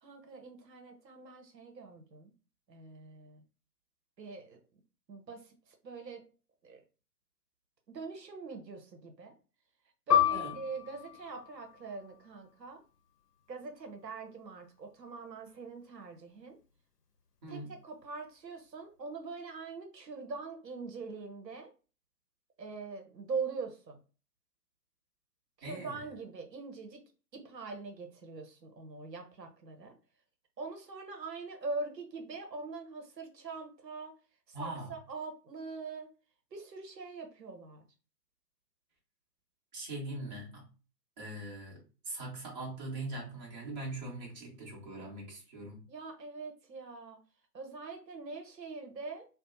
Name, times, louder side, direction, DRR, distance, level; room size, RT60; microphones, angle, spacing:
voice 1, 0.0-2.3 2.7-3.4 4.2-4.6 5.1-6.2 6.6-6.8 7.9-9.3 10.1-12.8 13.5-16.6 17.5-21.7 22.6-24.0 25.6-27.0 27.3-29.9 30.6-34.1 34.5-36.1 36.5-37.8 45.9-47.2 47.5-49.2, right 4 dB, 85° right, 3 dB, 0.8 m, -43 dB
Piano, 10.1-15.1 15.5-15.6 16.4-16.8, left 10 dB, 75° left, 0.7 m, -33 dB
voice 2, 25.6-26.0 34.5-34.9 39.7-40.7 41.2-45.8, right 2 dB, 25° right, -4 dB, 0.9 m, -41 dB
2.7 x 2.0 x 2.5 m, 0.35 s
figure-of-eight pair, 135°, 49 cm